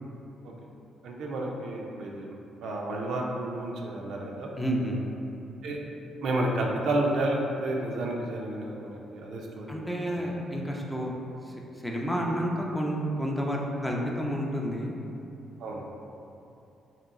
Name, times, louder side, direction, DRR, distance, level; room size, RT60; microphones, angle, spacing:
voice 1, 1.0-2.4 2.6-4.5 5.6-5.8 6.2-10.3 15.6-15.9, right 1 dB, 70° right, -1 dB, 0.4 m, -31 dB
voice 2, 4.6-5.0 9.7-11.1 11.8-14.9, equal, 5° left, -2 dB, 0.5 m, -30 dB
2.9 x 2.9 x 3.6 m, 2.8 s
cardioid pair, 90°, 0 cm